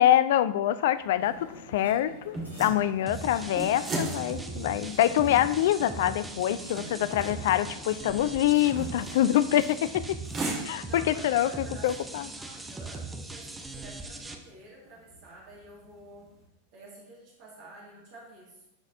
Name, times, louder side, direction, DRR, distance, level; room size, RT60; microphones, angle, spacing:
voice 1, 0.0-10.2 10.6-12.3, left 12 dB, 55° left, 14 dB, 0.3 m, -25 dB
sound 1, 0.6-16.4, right 2 dB, 30° right, 1.6 m, -41 dB
sound 2, 1.2-10.0, equal, 80° left, 1.4 m, -47 dB
sound 3, 3.1-14.3, right 3 dB, 10° right, 0.7 m, -40 dB
voice 2, 6.7-7.1 10.1-10.3 10.9-16.3 16.7-18.6, right 2 dB, 45° right, -4 dB, 1.9 m, -50 dB
11.5 x 4.0 x 2.6 m, 0.87 s
figure-of-eight pair, 90°, 0 cm